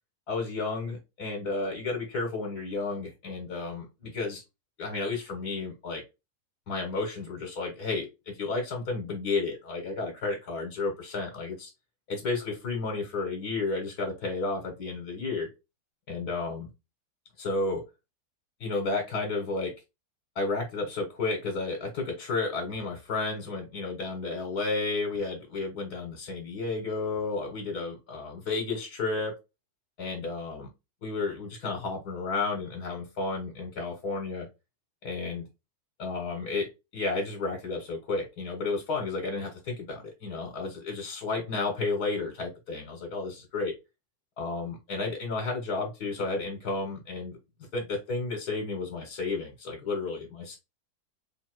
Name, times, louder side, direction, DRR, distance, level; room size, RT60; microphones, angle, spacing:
voice 1, 0.3-4.4 4.8-6.0 6.7-8.1 8.3-11.7 12.1-15.5 16.1-16.7 17.4-17.8 18.6-19.7 20.3-29.3 30.0-30.7 31.0-34.5 35.0-35.4 36.0-43.7 44.4-47.4 47.7-50.6, left 3 dB, 75° left, 1 dB, 1.5 m, -32 dB
3.7 x 2.7 x 4.3 m, 0.25 s
omnidirectional pair, 1.7 m